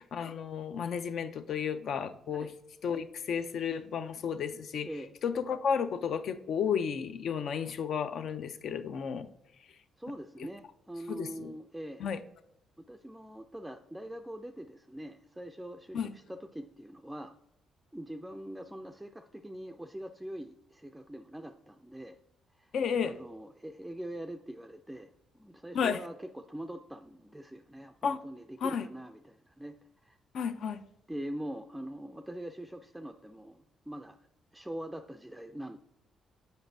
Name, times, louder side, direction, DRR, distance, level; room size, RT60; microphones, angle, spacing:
voice 1, 0.1-2.5 2.8-4.9 5.2-9.3 11.1-11.5 12.0-12.2 15.9-16.1 22.7-23.1 25.7-26.0 28.0-28.2 28.6-28.9 30.3-30.8, left 7 dB, 65° left, 11 dB, 0.4 m, -32 dB
voice 2, 4.8-5.2 10.0-12.1 12.8-17.3 17.9-22.2 22.5-22.7 23.0-29.8 30.0-30.2 31.1-34.2 34.5-35.8, right 1 dB, 5° right, 5 dB, 0.3 m, -43 dB
8.0 x 5.3 x 2.6 m, 0.82 s
cardioid pair, 90°, 0 cm